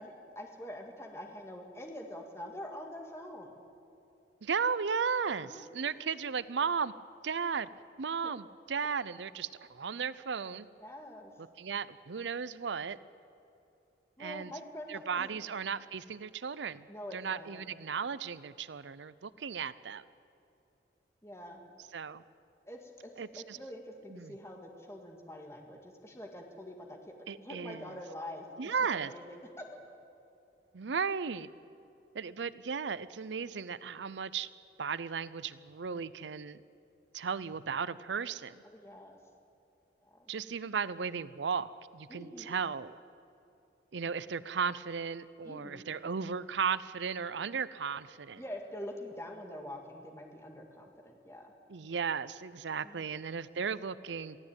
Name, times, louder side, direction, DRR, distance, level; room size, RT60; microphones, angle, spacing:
voice 1, 0.0-3.5 5.5-5.9 8.2-8.3 10.8-11.3 14.2-15.3 16.9-17.6 21.2-21.7 22.7-27.0 27.4-29.6 38.7-39.2 40.1-40.2 42.1-42.5 45.4-45.8 48.4-51.5 52.8-53.0, left 1 dB, 15° left, 2 dB, 1.8 m, -45 dB
voice 2, 4.4-6.9 7.2-7.7 8.0-10.7 11.6-13.0 14.2-14.5 14.9-16.9 17.1-20.0 21.9-22.2 23.2-23.6 24.1-24.4 27.3-28.0 28.6-29.1 30.7-31.5 32.1-34.5 34.8-36.6 37.1-38.6 40.3-43.0 43.9-48.4 51.7-54.4, right 6 dB, 80° right, 17 dB, 0.6 m, -35 dB
23.0 x 15.5 x 8.8 m, 2.7 s
head